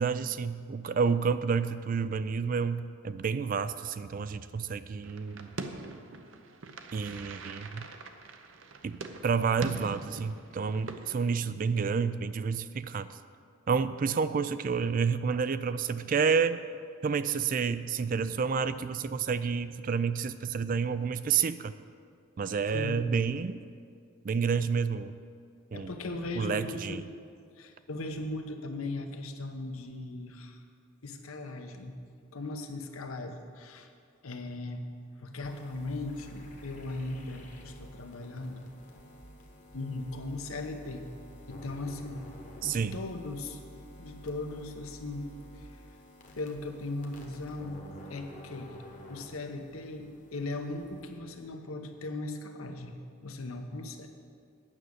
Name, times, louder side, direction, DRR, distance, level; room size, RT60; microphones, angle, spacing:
voice 1, 0.0-5.5 6.9-7.9 8.8-13.2 13.7-16.6 17.0-21.7 22.4-23.6 24.2-25.1 25.7-25.9 26.3-27.1 42.6-43.0, right 5 dB, 40° right, 13 dB, 0.3 m, -29 dB
sound 1, 5.0-11.3, right 3 dB, 65° right, 0.7 m, -43 dB
voice 2, 25.7-27.0 27.6-30.6 31.0-32.0 32.3-33.9 34.2-34.8 35.2-38.7 39.7-41.1 41.5-42.2 42.6-43.6 44.0-45.7 46.4-47.8 48.1-48.8 49.1-54.1, left 2 dB, 80° left, 5 dB, 1.0 m, -38 dB
sound 2, 35.4-51.2, equal, 35° left, 1.1 m, -50 dB
9.1 x 6.3 x 8.0 m, 2.2 s
head